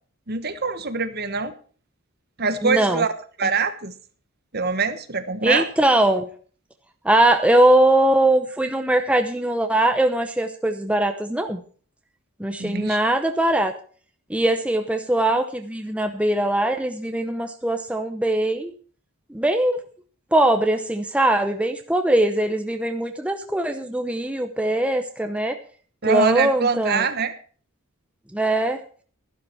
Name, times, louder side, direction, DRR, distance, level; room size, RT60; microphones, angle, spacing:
voice 1, 0.3-1.5 2.4-3.1 3.4-3.9 4.5-5.6 12.6-13.0 26.0-27.3, right 5 dB, 45° right, 10 dB, 1.2 m, -24 dB
voice 2, 2.6-3.0 5.4-6.3 7.0-11.6 12.4-13.7 14.3-18.7 19.3-19.8 20.3-25.6 26.0-27.0 28.3-28.8, right 1 dB, 5° right, 6 dB, 0.8 m, -21 dB
12.5 x 12.0 x 4.5 m, 0.43 s
head